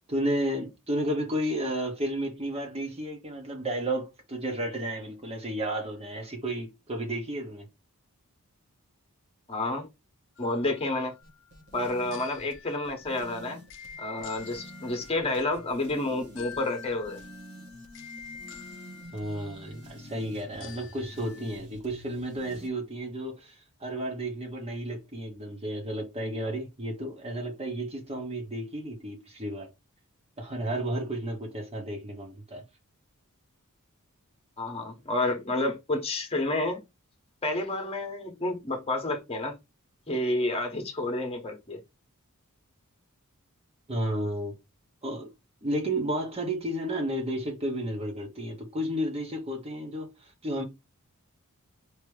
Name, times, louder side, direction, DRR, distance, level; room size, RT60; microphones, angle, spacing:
voice 1, 0.1-7.7 19.1-23.5 23.8-29.7 30.4-32.6 43.9-44.6 45.0-45.3 45.6-50.6, right 1 dB, 25° right, 1.0 m, -32 dB
voice 2, 9.5-9.9 10.4-11.1 11.7-13.6 14.0-17.2 34.6-36.8 37.4-39.6 40.1-41.8, left 2 dB, 25° left, 1.1 m, -30 dB
sound 1, 10.4-21.6, left 7 dB, 60° left, 0.7 m, -48 dB
sound 2, 11.2-22.7, equal, 75° right, 1.4 m, -48 dB
4.7 x 2.9 x 3.2 m
head